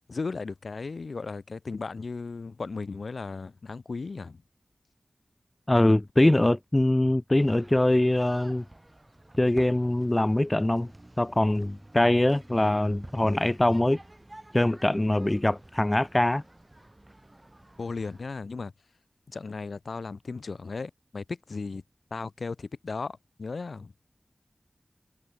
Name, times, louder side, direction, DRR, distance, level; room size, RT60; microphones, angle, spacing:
voice 1, 0.1-4.4 17.8-18.7 19.3-21.8 22.1-23.9, left 4 dB, 80° left, 2.0 m, -36 dB
voice 2, 5.7-8.6 9.4-10.9 11.2-14.0 14.5-16.4, left 1 dB, 25° left, 0.9 m, -23 dB
sound 1, 7.3-18.3, right 1 dB, 25° right, 3.9 m, -51 dB
cardioid pair, 45°, 0 cm